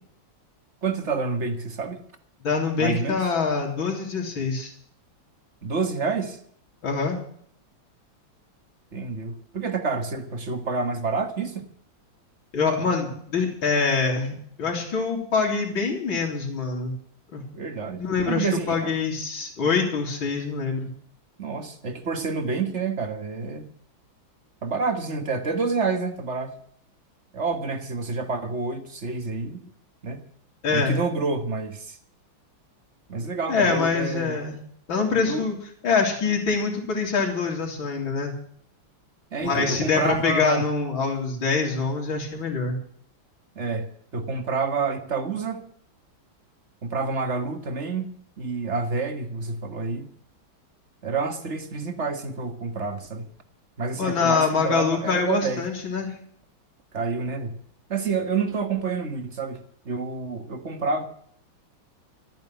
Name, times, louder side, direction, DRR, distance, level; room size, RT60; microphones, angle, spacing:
voice 1, 0.8-2.0 2.8-3.2 5.6-6.4 8.9-11.7 17.5-18.9 21.4-23.7 24.6-26.5 27.3-29.6 30.0-30.2 30.7-32.0 33.1-34.4 35.2-35.5 39.3-40.6 43.6-45.6 46.8-48.1 48.4-50.1 51.0-53.3 53.8-55.7 56.9-57.6 57.9-61.0, right 4 dB, 35° right, 1.8 m, -28 dB
voice 2, 2.4-4.7 6.8-7.2 12.5-16.9 17.3-17.4 18.0-20.9 30.6-31.0 33.5-34.6 34.9-35.6 35.8-38.3 39.4-42.8 54.0-56.1, left 5 dB, 75° left, 3.7 m, -25 dB
13.5 x 9.4 x 8.9 m
omnidirectional pair, 2.2 m